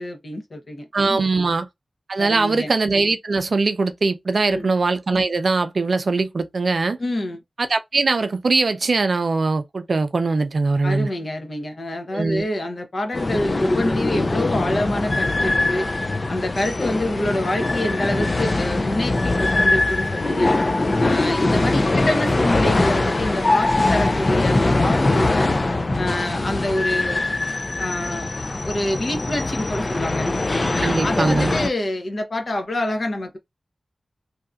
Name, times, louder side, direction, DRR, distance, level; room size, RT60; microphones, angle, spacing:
voice 1, 0.0-1.2 2.2-2.7 4.3-4.7 7.0-7.4 10.8-15.9 16.3-20.6 21.0-25.5 25.9-27.2 27.8-28.3 28.6-30.3 30.7-33.4, left 1 dB, 55° left, 0.9 m, -26 dB
voice 2, 0.9-1.7 2.1-7.0 7.6-11.1 12.1-12.4 30.8-31.5, right 3 dB, 65° right, 0.4 m, -21 dB
sound 1, 13.1-31.7, left 2 dB, 40° left, 0.3 m, -22 dB
2.8 x 2.5 x 2.3 m
wide cardioid pair, 105°, 0 cm